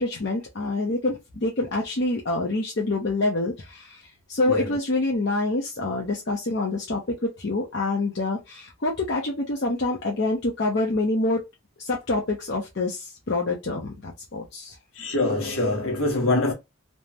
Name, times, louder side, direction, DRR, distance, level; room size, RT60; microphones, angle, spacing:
voice 1, 0.0-11.4 11.8-14.8, left 2 dB, 50° left, 0.7 m, -26 dB
voice 2, 14.9-16.5, left 2 dB, 65° left, 1.2 m, -24 dB
3.3 x 2.1 x 2.7 m
head